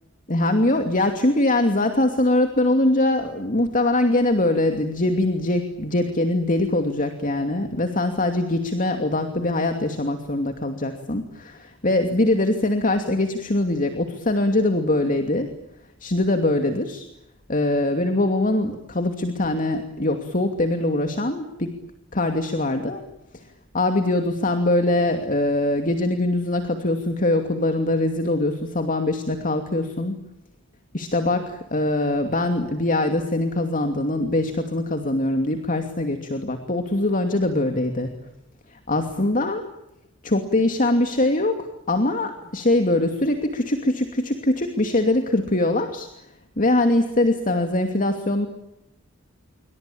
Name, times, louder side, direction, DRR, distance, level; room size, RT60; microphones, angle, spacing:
voice 1, 0.3-15.5 16.0-17.1 17.5-21.7 22.1-23.0 23.3-23.4 23.7-30.2 30.9-38.1 38.7-39.6 40.2-46.1 46.6-48.5, left 2 dB, 40° left, 6 dB, 2.7 m, -22 dB
28.0 x 24.5 x 8.7 m, 0.87 s
head